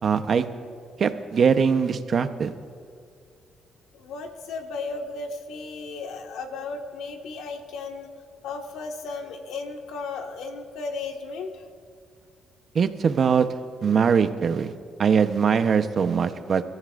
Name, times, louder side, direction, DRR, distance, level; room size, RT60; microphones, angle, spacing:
voice 1, 0.0-0.4 1.0-2.5 12.7-13.5 13.8-14.7 15.0-16.6, right 6 dB, 50° right, 9 dB, 0.9 m, -21 dB
voice 2, 3.9-8.1 8.4-11.6, left 4 dB, 85° left, 3 dB, 1.7 m, -35 dB
29.0 x 14.5 x 2.6 m, 2.2 s
cardioid pair, 90°, 0 cm